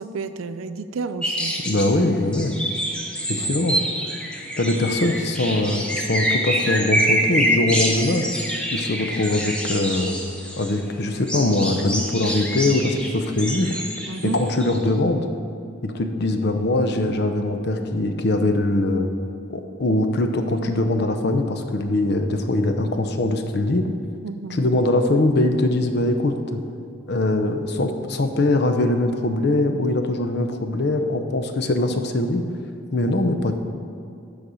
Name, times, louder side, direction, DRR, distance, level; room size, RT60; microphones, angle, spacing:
voice 1, 0.0-1.6 3.4-3.5 14.1-14.4 24.2-24.6, right 4 dB, 85° right, 11 dB, 0.4 m, -31 dB
sound 1, 1.2-1.9 2.3-10.7 11.1-14.8, equal, 5° left, 0.7 m, -26 dB
voice 2, 1.6-2.5 3.3-3.8 4.6-8.2 8.7-10.2 10.6-13.8 14.2-15.2 15.8-19.1 19.5-23.9 24.5-26.6 27.1-32.5 32.9-33.5, left 2 dB, 55° left, 6 dB, 0.6 m, -22 dB
9.4 x 4.1 x 6.3 m, 2.6 s
head